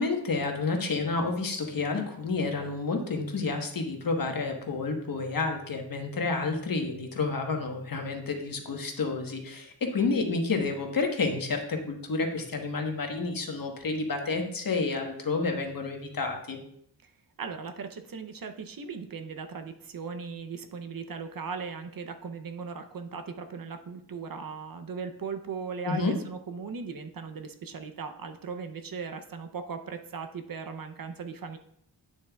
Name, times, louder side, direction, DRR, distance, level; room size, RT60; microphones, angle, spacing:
voice 1, 0.0-16.6 25.9-26.2, left 3 dB, 50° left, 3 dB, 1.3 m, -30 dB
voice 2, 17.4-31.6, right 5 dB, 50° right, 8 dB, 0.7 m, -38 dB
8.9 x 7.2 x 2.3 m, 0.69 s
wide cardioid pair, 90°, 44 cm